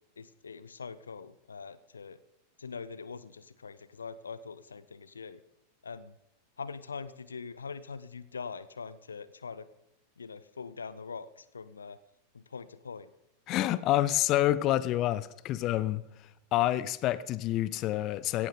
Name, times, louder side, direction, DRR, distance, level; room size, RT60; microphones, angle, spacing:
voice 1, 0.2-2.2 2.6-5.4 5.8-6.2 6.6-9.7 10.2-12.0 12.3-13.1, left 5 dB, 75° left, 16 dB, 0.6 m, -43 dB
voice 2, 13.5-16.0 16.5-18.5, left 14 dB, 35° left, 17 dB, 0.7 m, -28 dB
17.5 x 14.5 x 3.8 m, 0.83 s
figure-of-eight pair, 90°, 0 cm